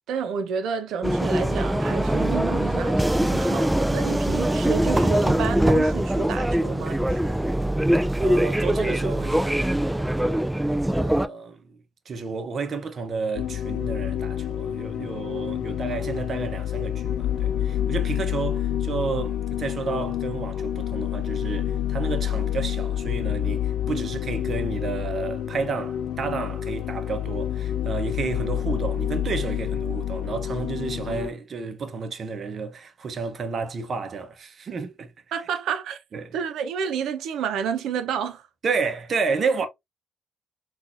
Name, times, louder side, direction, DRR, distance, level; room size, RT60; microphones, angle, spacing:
voice 1, 0.1-7.5 35.3-36.0 36.3-38.5, right 7 dB, 80° right, 0.8 m, -30 dB
sound 1, 1.0-11.3, right 1 dB, 5° right, 0.3 m, -22 dB
voice 2, 8.2-10.6 10.9-11.8 12.1-35.1 36.1-36.3 38.6-39.7, right 4 dB, 50° right, 0.9 m, -31 dB
sound 2, 13.4-31.3, left 10 dB, 80° left, 0.3 m, -28 dB
3.9 x 2.5 x 2.5 m
cardioid pair, 90°, 0 cm